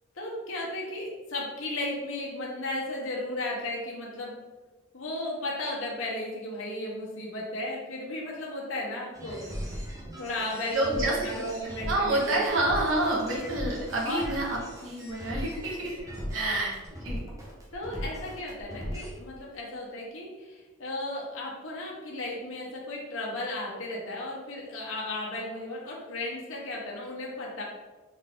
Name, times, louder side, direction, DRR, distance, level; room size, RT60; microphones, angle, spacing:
voice 1, 0.2-4.3 4.9-9.4 10.2-12.7 14.0-14.3 16.3-16.7 17.7-27.6, left 1 dB, 65° left, -3 dB, 0.9 m, -35 dB
sound 1, 9.1-19.1, equal, 15° right, 0.5 m, -38 dB
voice 2, 10.7-11.3 11.6-16.0 16.3-16.7 17.0-17.2, right 2 dB, 65° right, -4 dB, 0.9 m, -28 dB
3.5 x 2.5 x 3.5 m, 1.3 s
head